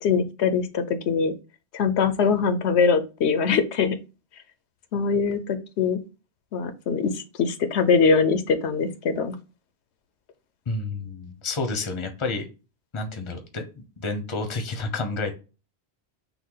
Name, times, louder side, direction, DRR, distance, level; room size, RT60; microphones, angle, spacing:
voice 1, 0.0-1.3 1.7-4.0 4.9-6.0 6.5-9.4, left 5 dB, 80° left, 10 dB, 0.9 m, -22 dB
voice 2, 10.7-12.5 12.9-15.3, left 3 dB, 30° left, 7 dB, 0.8 m, -30 dB
5.9 x 2.3 x 3.8 m, 0.31 s
omnidirectional pair, 1.1 m